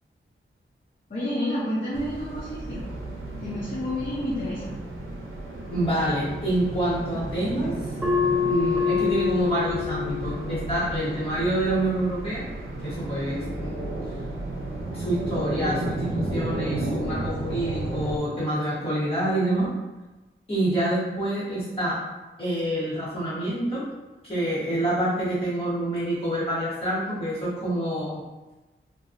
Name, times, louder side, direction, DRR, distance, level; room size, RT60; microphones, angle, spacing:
voice 1, 1.1-2.8 3.4-4.8, left 1 dB, 45° left, -9 dB, 0.7 m, -29 dB
sound 1, 1.9-18.2, right 2 dB, 70° right, 0.5 m, -33 dB
voice 2, 5.7-7.7 8.4-12.4 12.8-13.8 14.9-19.7 20.5-22.0 22.4-23.8 24.2-28.2, right 1 dB, 25° left, -12 dB, 1.2 m, -27 dB
sound 2, 8.0-13.1, left 6 dB, 5° right, 0.5 m, -28 dB
3.0 x 2.2 x 2.5 m, 1.1 s
wide cardioid pair, 70°, 21 cm